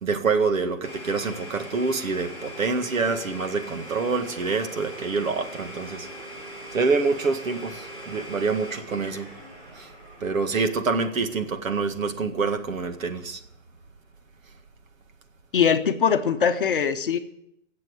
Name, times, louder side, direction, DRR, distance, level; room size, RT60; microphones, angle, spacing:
voice 1, 0.0-6.1 6.7-9.3 9.8-9.9 10.2-13.4, right 4 dB, 80° right, 2.0 m, -26 dB
Domestic sounds home sounds, 0.8-12.5, equal, 25° right, 7.9 m, -41 dB
voice 2, 15.5-17.2, left 7 dB, 40° left, 0.8 m, -21 dB
15.0 x 7.7 x 9.5 m
hypercardioid pair, 175°, 40 cm